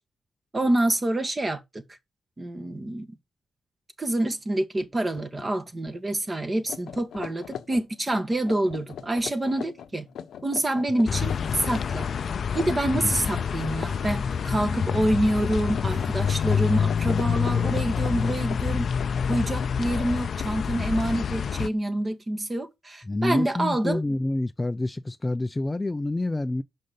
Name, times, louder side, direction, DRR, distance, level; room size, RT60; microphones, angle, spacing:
voice 1, 0.5-1.8 2.4-3.1 4.0-10.1 10.4-12.1 12.5-18.9 19.3-24.0, right 1 dB, 30° right, 1.8 m, -27 dB
sound 1, 5.1-5.5 5.8-6.0 6.5-14.6 14.9-15.2 15.5-20.6, left 8 dB, 85° left, 0.9 m, -41 dB
sound 2, 11.1-21.7, left 7 dB, 65° left, 0.6 m, -27 dB
sound 3, 11.2-16.9, right 2 dB, 55° right, 4.5 m, -52 dB
voice 2, 23.0-26.6, left 2 dB, 20° left, 0.5 m, -27 dB
6.5 x 5.6 x 6.7 m
cardioid pair, 80°, 0 cm